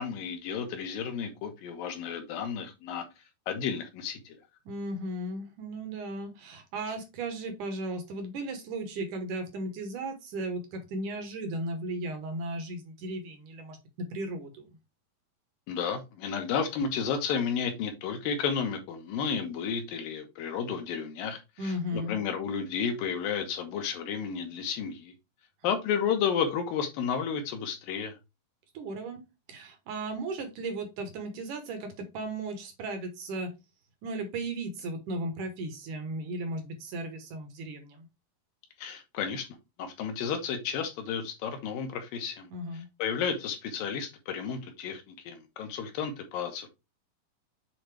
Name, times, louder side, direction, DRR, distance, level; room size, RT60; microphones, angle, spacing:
voice 1, 0.0-3.0 3.5-4.4 15.7-25.1 25.6-28.2 38.8-39.5 39.8-46.7, left 7 dB, 70° left, 2.6 m, -32 dB
voice 2, 4.7-13.8 14.1-14.7 21.6-22.2 28.7-29.2 29.5-33.5 34.0-38.1 42.5-42.9, right 1 dB, 65° right, 2.2 m, -36 dB
7.7 x 3.8 x 3.3 m
omnidirectional pair, 4.5 m